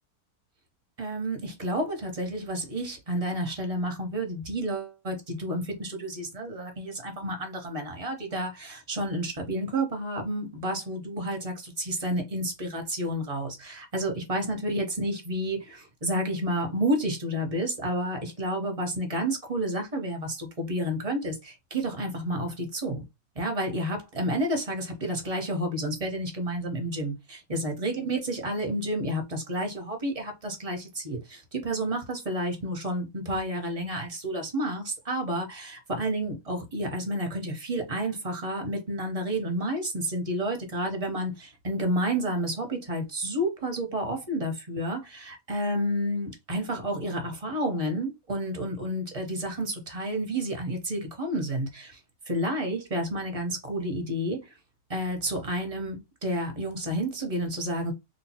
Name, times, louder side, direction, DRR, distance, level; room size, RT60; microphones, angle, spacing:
voice 1, 1.0-23.0 23.3-52.0 52.3-54.5 54.9-57.9, right 1 dB, 25° right, 0.9 m, -30 dB
3.0 x 2.2 x 4.2 m
omnidirectional pair, 1.6 m